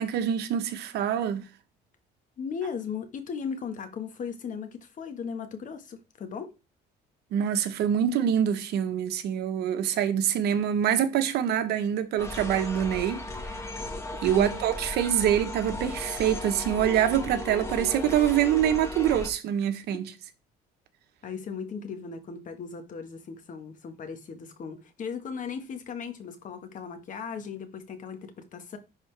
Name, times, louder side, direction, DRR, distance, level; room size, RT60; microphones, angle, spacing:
voice 1, 0.0-1.4 7.3-13.2 14.2-20.1, right 9 dB, 75° right, 1.1 m, -25 dB
voice 2, 2.4-6.5 14.3-14.6 21.2-28.8, left 6 dB, 50° left, 1.6 m, -37 dB
sound 1, 12.2-19.3, left 2 dB, 15° left, 1.5 m, -36 dB
10.5 x 4.1 x 3.4 m
cardioid pair, 110°, 17 cm